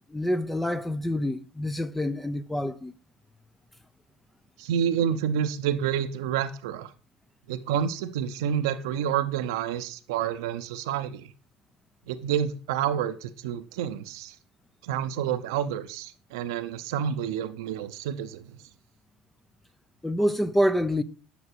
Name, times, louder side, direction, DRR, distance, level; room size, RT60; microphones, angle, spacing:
voice 1, 0.1-2.9 20.0-21.0, equal, 5° left, 0.7 m, -26 dB
voice 2, 4.6-6.9 7.5-11.3 12.1-14.3 14.8-18.6, right 9 dB, 85° right, 0.8 m, -29 dB
10.0 x 5.9 x 4.6 m
supercardioid pair, 90°, 2 cm